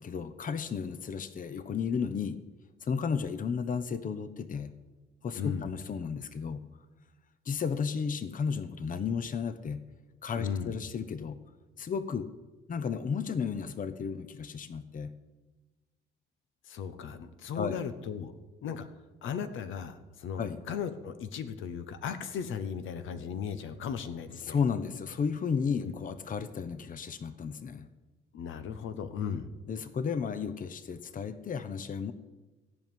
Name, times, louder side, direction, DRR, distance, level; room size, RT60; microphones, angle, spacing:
voice 1, 0.0-2.4 2.8-4.7 5.2-6.6 7.4-9.8 10.2-11.4 11.8-12.3 12.7-15.1 17.5-17.8 20.4-20.6 24.4-27.9 29.7-32.1, left 6 dB, 45° left, 12 dB, 0.9 m, -33 dB
voice 2, 5.4-5.7 10.4-10.8 16.6-18.3 18.6-18.9 19.2-24.6 25.8-25.9 28.3-29.5, left 7 dB, 80° left, 10 dB, 1.0 m, -36 dB
15.5 x 5.3 x 9.3 m, 1.2 s
cardioid pair, 90°, 20 cm